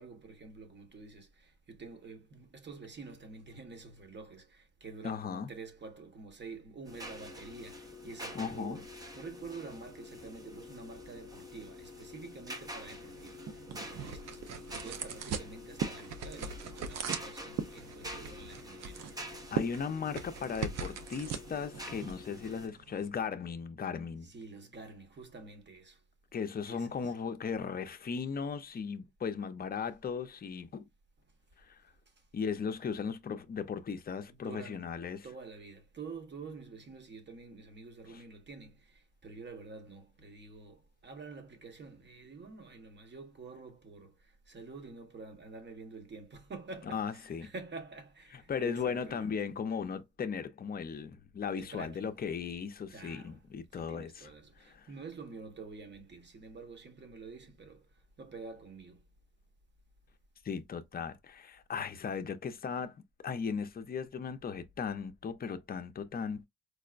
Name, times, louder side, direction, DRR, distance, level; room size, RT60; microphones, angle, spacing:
voice 1, 0.0-8.9 9.1-19.4 24.2-26.0 26.7-27.1 32.1-32.3 32.6-32.7 34.3-34.9 35.2-49.3 51.6-52.1 52.9-53.4 53.7-59.0, right 4 dB, 35° right, 1.2 m, -48 dB
voice 2, 5.0-5.5 8.3-8.8 19.5-24.3 26.3-30.9 31.6-31.8 32.3-35.3 38.1-38.2 46.9-47.5 48.5-54.3 54.6-54.9 60.4-63.0 63.2-66.5, left 6 dB, 30° left, 0.5 m, -37 dB
sound 1, 6.8-22.7, left 1 dB, 10° right, 0.6 m, -47 dB
sound 2, 12.9-23.1, right 7 dB, 60° right, 0.6 m, -40 dB
4.6 x 2.0 x 2.4 m
cardioid pair, 90°, 30 cm